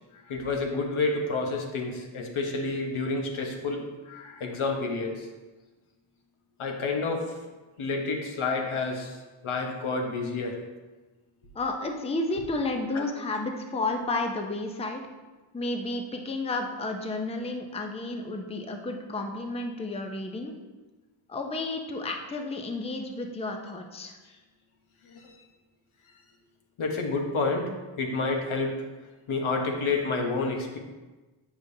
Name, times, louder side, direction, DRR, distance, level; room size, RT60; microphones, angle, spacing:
voice 1, 0.1-5.3 6.6-7.4 7.8-10.6 12.9-13.1 25.1-25.3 26.8-28.8 29.3-30.8, left 3 dB, 80° left, 2 dB, 1.0 m, -29 dB
voice 2, 11.5-15.0 15.5-20.5 21.3-24.2, left 2 dB, 15° left, 4 dB, 0.5 m, -32 dB
8.1 x 5.1 x 2.7 m, 1.2 s
wide cardioid pair, 120°, 48 cm